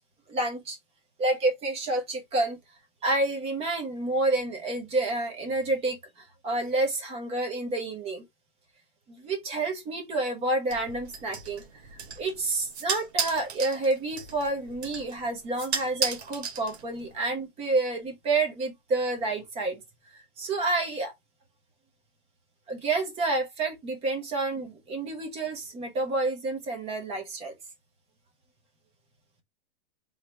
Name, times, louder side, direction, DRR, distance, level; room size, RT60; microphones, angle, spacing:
voice 1, 0.3-0.8 1.2-2.6 3.0-8.2 9.1-11.6 11.9-19.8 20.1-21.1 22.7-27.5, right 2 dB, 20° right, 1.2 m, -29 dB
sound 1, 10.7-17.2, right 6 dB, 85° right, 1.8 m, -35 dB
3.9 x 3.1 x 3.4 m
hypercardioid pair, 150°, 31 cm